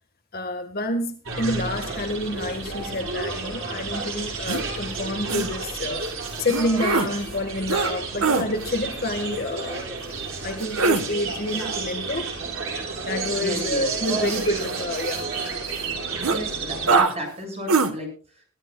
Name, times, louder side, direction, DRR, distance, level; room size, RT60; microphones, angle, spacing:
voice 1, 0.3-6.1 6.4-9.9 10.4-12.3 13.1-15.6, left 1 dB, 45° left, 1.8 m, -28 dB
sound 1, 1.2-17.0, right 4 dB, 65° right, 5.6 m, -31 dB
sound 2, 4.5-4.6 5.3-5.5 6.5-7.1 7.7-7.9 8.2-8.5 10.6-11.0 14.1-15.4 15.8-15.9 16.2-16.4 16.9-17.1 17.7-17.9, right 4 dB, 85° right, 1.5 m, -22 dB
voice 2, 13.4-14.0 16.2-18.4, equal, 30° right, 7.7 m, -34 dB
23.0 x 14.0 x 2.4 m
head